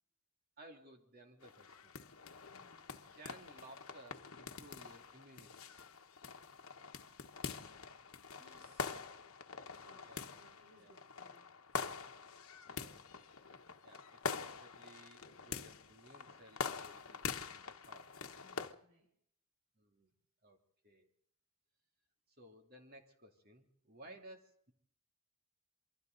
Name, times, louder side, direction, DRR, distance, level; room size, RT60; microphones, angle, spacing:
voice 1, 0.6-1.9 3.1-5.6 10.0-10.3 10.7-10.9 12.7-13.1 13.4-18.4 19.8-20.1 20.4-20.6 20.8-21.1 22.4-24.7, right 1 dB, 45° right, 3 dB, 2.9 m, -58 dB
sound 1, 1.4-18.7, left 5 dB, 65° left, 1.3 m, -45 dB
voice 2, 2.5-2.8 8.4-9.3 9.8-11.5 18.3-19.1 24.0-24.2, equal, 85° right, 2 dB, 5.2 m, -67 dB
28.5 x 23.5 x 4.0 m, 0.65 s
head